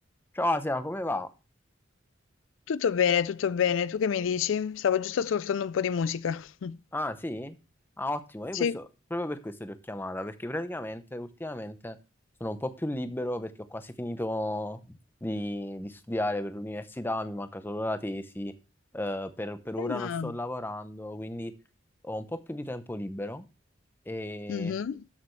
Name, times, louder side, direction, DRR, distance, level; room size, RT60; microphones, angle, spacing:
voice 1, 0.3-1.3 6.9-7.6 8.0-8.9 9.1-12.0 12.4-18.5 18.9-21.5 22.0-23.5 24.1-24.7, left 1 dB, 10° left, 0.7 m, -33 dB
voice 2, 2.7-6.8 8.5-8.8 19.8-20.3 24.5-25.0, left 7 dB, 80° left, 0.4 m, -28 dB
13.0 x 6.7 x 3.2 m
head